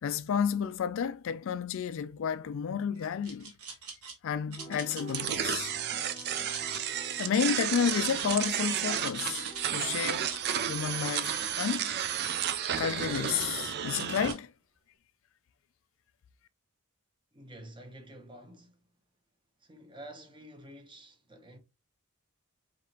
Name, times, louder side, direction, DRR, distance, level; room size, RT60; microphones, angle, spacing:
voice 1, 0.0-3.5 4.2-5.7 7.2-10.3 10.7-11.9 12.8-14.5, left 7 dB, 60° left, 0.3 m, -31 dB
sound 1, 3.0-4.1 4.5-5.6 6.1-8.5 8.8-10.5 10.9-13.5 13.9-14.4, right 4 dB, 80° right, 1.3 m, -43 dB
sound 2, 4.6-10.9, equal, 10° left, 0.6 m, -49 dB
sound 3, 5.1-14.3, right 9 dB, 50° right, 0.4 m, -32 dB
voice 2, 17.3-18.8 19.6-21.6, right 1 dB, 20° right, 0.8 m, -49 dB
4.8 x 2.9 x 2.9 m
head